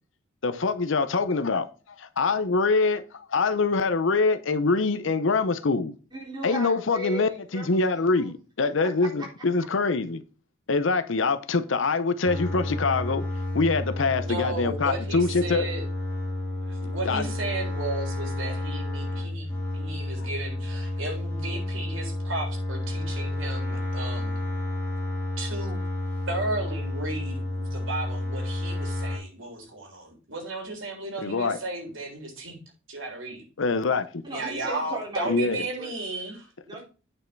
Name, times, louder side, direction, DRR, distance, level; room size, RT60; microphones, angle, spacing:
voice 1, 0.4-5.9 6.4-10.2 10.7-13.2 13.5-15.7 16.8-17.3 31.2-31.6 33.6-34.2 35.3-35.6, left 3 dB, 65° left, 0.7 m, -24 dB
voice 2, 6.1-8.3 9.0-9.3 34.2-35.9 36.7-36.8, equal, 20° right, 3.8 m, -37 dB
sound 1, 12.2-29.2, left 1 dB, 10° left, 3.4 m, -31 dB
voice 3, 14.2-15.8 16.7-24.5 25.4-25.8 26.3-32.5 32.9-33.4 34.3-36.5, right 2 dB, 70° right, 3.7 m, -34 dB
9.1 x 5.6 x 4.5 m
head